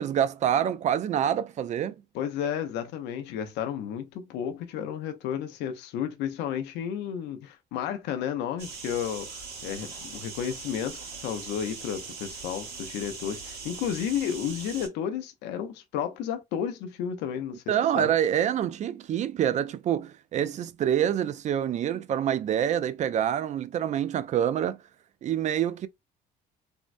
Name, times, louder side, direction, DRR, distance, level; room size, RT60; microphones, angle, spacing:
voice 1, 0.0-1.9 17.7-24.8 25.2-25.9, right 10 dB, 45° right, 0.4 m, -26 dB
voice 2, 2.1-17.6 18.0-18.1, left 9 dB, 90° left, 0.7 m, -32 dB
sound 1, 8.6-14.9, right 5 dB, 70° right, 1.7 m, -41 dB
3.5 x 2.0 x 2.5 m
cardioid pair, 110°, 17 cm